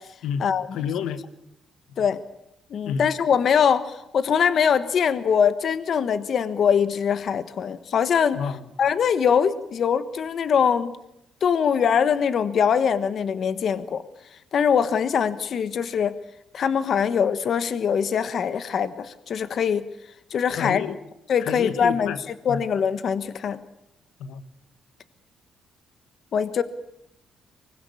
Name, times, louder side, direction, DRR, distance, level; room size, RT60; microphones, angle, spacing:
voice 1, 0.2-1.2 2.8-3.1 8.3-8.6 20.5-21.0 21.4-22.2 22.5-22.6 24.2-24.4, left 7 dB, 85° left, 1.6 m, -30 dB
voice 2, 2.7-8.4 8.8-11.0 11.4-14.0 14.5-16.1 16.5-19.9 20.3-20.8 21.3-22.1 22.4-23.6 26.3-26.6, left 7 dB, 60° left, 1.3 m, -22 dB
24.5 x 20.5 x 8.6 m
cardioid pair, 90°, 0 cm